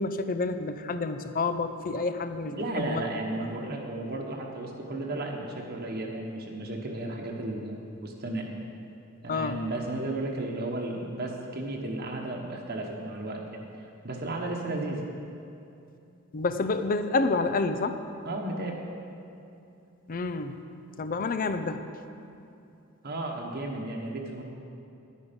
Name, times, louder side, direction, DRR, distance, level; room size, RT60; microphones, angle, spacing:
voice 1, 0.0-3.0 3.4-3.5 9.3-9.6 16.3-18.0 20.1-20.5 20.9-21.9, left 3 dB, 40° left, 10 dB, 0.5 m, -29 dB
voice 2, 2.4-8.5 9.2-13.6 14.0-15.0 18.2-18.8 23.0-24.4, right 2 dB, 50° right, 0 dB, 1.2 m, -34 dB
11.0 x 10.0 x 5.2 m, 2.7 s
head